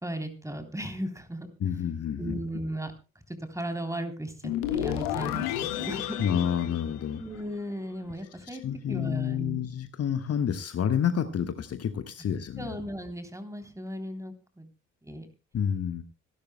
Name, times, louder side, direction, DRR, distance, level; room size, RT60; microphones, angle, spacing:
voice 1, 0.0-2.9 3.5-6.2 7.2-8.6 8.9-9.7 12.6-14.7 15.0-15.3, right 1 dB, 10° right, 7 dB, 3.2 m, -36 dB
voice 2, 1.6-2.4 6.2-7.2 8.4-12.7 15.5-16.0, left 8 dB, 40° left, 9 dB, 1.4 m, -29 dB
sound 1, 4.4-7.7, left 11 dB, 65° left, 1.5 m, -32 dB
26.0 x 12.0 x 2.2 m, 0.31 s
figure-of-eight pair, 45°, 37 cm